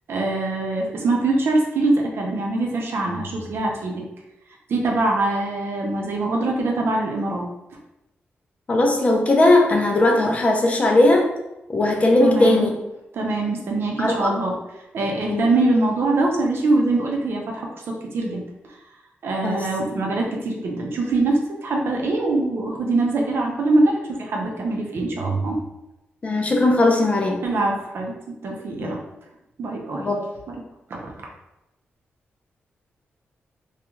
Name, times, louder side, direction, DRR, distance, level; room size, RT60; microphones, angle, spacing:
voice 1, 0.1-4.0 4.7-7.5 12.2-12.7 13.1-14.6 14.9-18.4 19.2-25.6 27.4-28.1 28.4-29.0 29.6-30.1 30.5-30.6 30.9-31.3, right 2 dB, 70° right, 0 dB, 0.6 m, -23 dB
voice 2, 8.7-11.3 11.7-12.7 14.0-14.3 15.3-15.5 19.4-19.7 26.2-27.4 28.8-28.9 30.0-30.3, left 2 dB, 30° left, 1 dB, 0.5 m, -18 dB
2.4 x 2.3 x 3.0 m, 0.91 s
cardioid pair, 90°, 4 cm